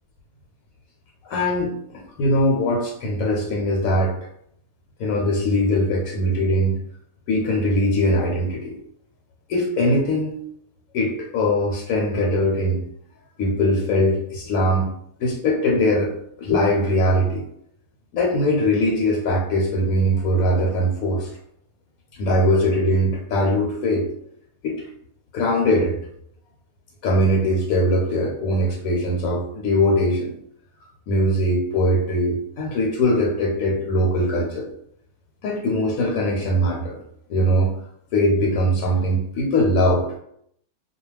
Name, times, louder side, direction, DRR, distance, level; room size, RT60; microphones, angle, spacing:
voice 1, 1.2-1.7 2.2-4.1 5.0-6.8 7.3-8.8 9.5-10.3 10.9-12.9 13.4-14.9 15.2-16.1 16.4-17.4 18.1-21.3 22.1-24.1 24.6-24.8 25.3-26.0 27.0-30.3 31.1-34.7 35.4-37.0 37.3-37.7 38.1-40.2, equal, 75° left, -2 dB, 1.0 m, -21 dB
2.3 x 2.2 x 3.2 m, 0.71 s
omnidirectional pair, 1.5 m